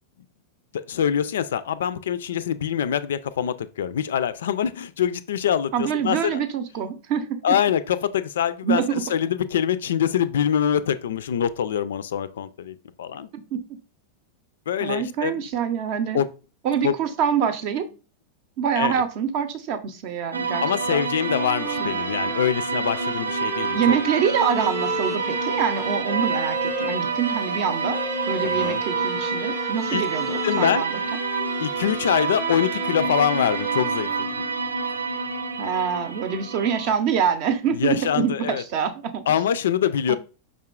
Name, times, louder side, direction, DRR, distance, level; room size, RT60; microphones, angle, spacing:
voice 1, 0.7-6.4 7.4-8.8 9.1-13.3 14.7-15.4 16.1-16.3 16.8-16.9 18.8-19.0 20.6-24.0 28.4-28.8 29.9-30.0 30.4-30.8 31.6-34.3 37.7-38.6 39.3-40.2, left 9 dB, 60° left, 0.3 m, -24 dB
voice 2, 5.7-7.3 8.6-9.0 13.5-13.6 14.8-16.2 16.6-17.9 18.6-21.0 21.8-22.0 23.7-28.0 28.3-31.0 35.6-39.2 40.1-40.2, right 7 dB, 45° right, 0.6 m, -25 dB
sound 1, 20.3-36.9, right 4 dB, 90° right, 0.4 m, -27 dB
Bowed string instrument, 21.1-35.0, left 1 dB, ahead, 0.6 m, -35 dB
5.4 x 3.6 x 2.4 m
figure-of-eight pair, 90°, 0 cm